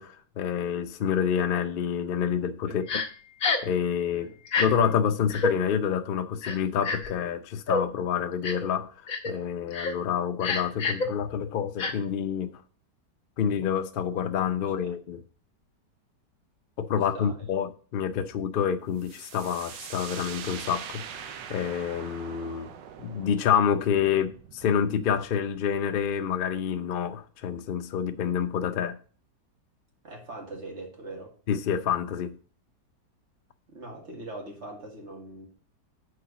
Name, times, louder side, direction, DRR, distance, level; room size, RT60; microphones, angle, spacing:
voice 1, 0.0-2.8 3.6-4.3 4.6-8.9 9.3-12.6 13.4-15.2 16.8-22.7 23.0-29.0 31.5-32.3, left 8 dB, 85° left, 0.4 m, -28 dB
Crying sobbing, 2.9-3.1 3.4-3.7 4.4-4.7 5.3-5.5 6.4-7.1 7.7-7.8 8.4-8.7 9.1-9.3 9.7-9.9 10.4-11.1 11.8-11.9, left 4 dB, 55° left, 1.4 m, -27 dB
voice 2, 14.6-14.9 17.1-17.3 30.0-31.3 33.7-35.5, right 2 dB, 40° right, 2.2 m, -41 dB
sound 1, 19.0-26.6, right 8 dB, 90° right, 1.3 m, -43 dB
6.7 x 4.4 x 6.7 m
omnidirectional pair, 1.8 m